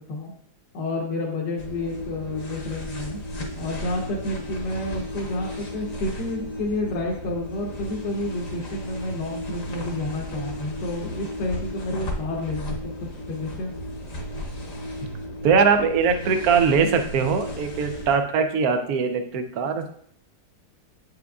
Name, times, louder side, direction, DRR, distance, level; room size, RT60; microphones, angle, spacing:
voice 1, 0.7-3.2 3.6-13.8, left 2 dB, 70° left, -1 dB, 1.5 m, -30 dB
sound 1, 1.6-18.2, left 1 dB, 50° left, 1.2 m, -34 dB
voice 2, 15.4-19.8, right 5 dB, 65° right, 6 dB, 1.0 m, -21 dB
8.2 x 5.1 x 2.3 m, 0.63 s
omnidirectional pair, 2.0 m